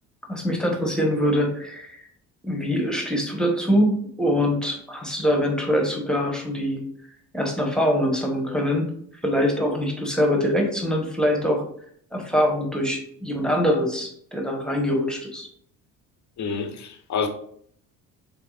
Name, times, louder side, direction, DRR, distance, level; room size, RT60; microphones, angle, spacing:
voice 1, 0.3-2.0 2.4-6.8 7.3-8.9 9.2-11.6 12.1-15.5, equal, ahead, 1.2 m, -23 dB
voice 2, 16.4-17.3, left 5 dB, 40° left, 0.8 m, -28 dB
4.8 x 3.3 x 2.4 m
hypercardioid pair, 55°, 44 cm